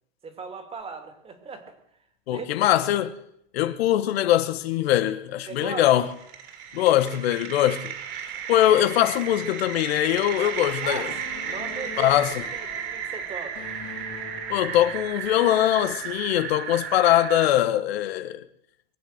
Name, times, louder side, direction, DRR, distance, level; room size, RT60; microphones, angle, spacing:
voice 1, 0.2-1.8 2.3-2.7 5.5-5.9 10.4-11.1 11.4-12.2 12.5-13.7, right 5 dB, 20° right, 2.4 m, -38 dB
voice 2, 2.3-3.1 3.5-6.1 6.7-7.9 8.2-11.1 12.0-12.5 14.5-18.4, left 12 dB, 85° left, 1.3 m, -22 dB
sound 1, 5.6-17.5, right 8 dB, 40° right, 2.7 m, -34 dB
sound 2, 10.7-15.3, left 6 dB, 60° left, 3.5 m, -43 dB
23.0 x 7.9 x 8.0 m
supercardioid pair, 150°, 30 cm